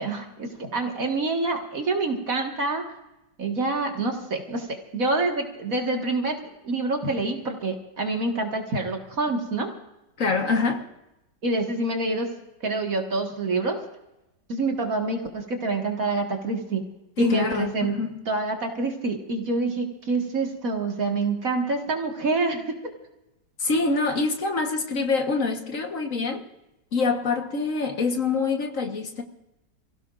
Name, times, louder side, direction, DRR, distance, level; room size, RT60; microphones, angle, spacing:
voice 1, 0.0-2.8 3.4-9.7 11.4-12.3 12.6-13.8 14.5-16.8 17.2-18.0 18.3-22.8, right 3 dB, 50° right, 2.1 m, -27 dB
voice 2, 10.2-10.8 17.2-18.2 23.6-26.4 26.9-29.2, left 4 dB, 50° left, 1.6 m, -25 dB
29.0 x 16.5 x 2.5 m
omnidirectional pair, 1.9 m